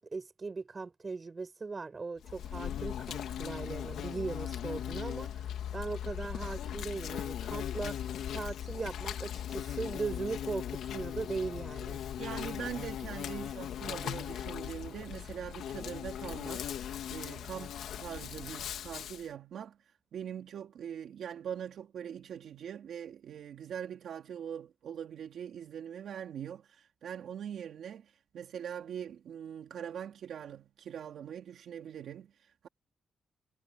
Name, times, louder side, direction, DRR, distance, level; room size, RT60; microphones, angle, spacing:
voice 1, 0.1-5.3 5.7-8.0 8.3-12.0, right 4 dB, 25° right, 6.6 m, -38 dB
Insect, 2.2-19.3, left 10 dB, 75° left, 2.6 m, -39 dB
voice 2, 12.2-32.7, right 9 dB, 65° right, 2.4 m, -42 dB
cardioid pair, 130°, 0 cm